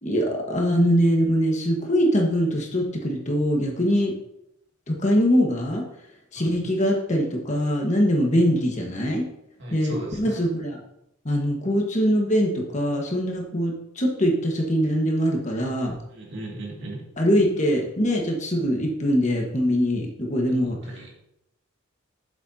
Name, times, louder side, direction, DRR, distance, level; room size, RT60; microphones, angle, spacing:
voice 1, 0.0-4.1 4.9-5.8 6.3-9.2 9.7-10.8 11.2-16.0 17.2-20.8, equal, 35° left, 0 dB, 1.5 m, -22 dB
voice 2, 6.4-6.7 9.6-10.5 16.1-17.0 20.5-21.1, right 1 dB, 55° right, -2 dB, 2.4 m, -37 dB
11.5 x 7.4 x 2.9 m, 0.81 s
head